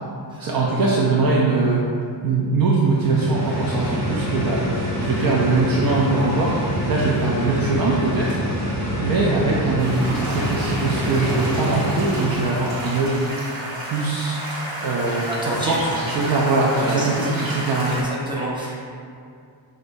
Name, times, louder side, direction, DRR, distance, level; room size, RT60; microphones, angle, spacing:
voice 1, 0.4-1.8 2.2-4.6 5.0-6.5 6.9-8.4 9.0-13.2 13.8-14.4 14.8-17.9, right 3 dB, 50° right, -4 dB, 0.5 m, -21 dB
sound 1, 2.9-12.9, equal, 35° right, 1.0 m, -27 dB
sound 2, 9.8-18.0, right 1 dB, 75° right, 1.4 m, -32 dB
voice 2, 11.0-11.3 15.1-15.8 16.8-17.3 17.9-18.8, right 1 dB, 10° right, -7 dB, 0.9 m, -29 dB
6.0 x 2.6 x 2.6 m, 2.4 s
cardioid pair, 120°, 47 cm